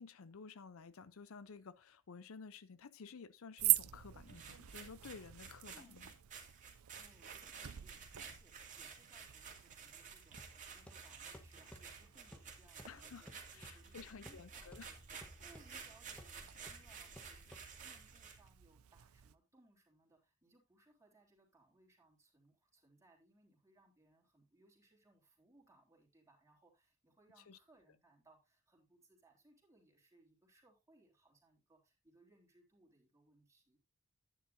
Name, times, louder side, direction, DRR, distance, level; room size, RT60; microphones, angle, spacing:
voice 1, 0.0-6.1 12.8-14.9 27.5-27.6, left 5 dB, 70° left, 0.6 m, -53 dB
sound 1, 3.6-19.3, right 18 dB, 75° right, 0.6 m, -44 dB
sound 2, 4.3-18.5, right 6 dB, 35° right, 2.4 m, -53 dB
voice 2, 5.7-6.2 7.0-15.0 15.4-33.8, right 2 dB, 15° right, 3.5 m, -68 dB
sound 3, 10.4-18.1, equal, 5° left, 1.1 m, -59 dB
11.0 x 9.8 x 2.6 m
head